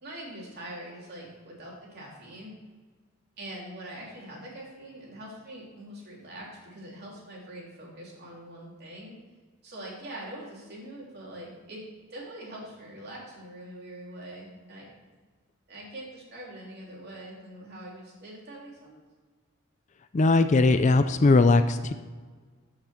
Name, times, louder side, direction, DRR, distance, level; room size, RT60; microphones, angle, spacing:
voice 1, 0.0-2.5 3.4-9.2 9.6-11.8 12.1-14.9 15.7-19.0, right 1 dB, 50° right, -4 dB, 3.3 m, -43 dB
voice 2, 20.1-21.9, left 3 dB, 35° left, 10 dB, 0.4 m, -20 dB
13.5 x 5.9 x 4.4 m, 1.4 s
head